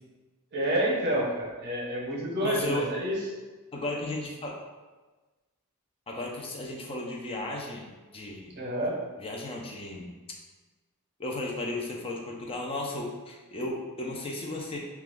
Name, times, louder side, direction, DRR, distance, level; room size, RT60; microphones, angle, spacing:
voice 1, 0.5-3.2 8.5-9.0, right 1 dB, 50° right, -3 dB, 0.8 m, -28 dB
voice 2, 2.4-2.9 3.7-4.6 6.1-8.5 9.2-10.1 11.2-14.8, left 2 dB, 25° left, 0 dB, 0.4 m, -34 dB
2.9 x 2.3 x 3.4 m, 1.3 s
head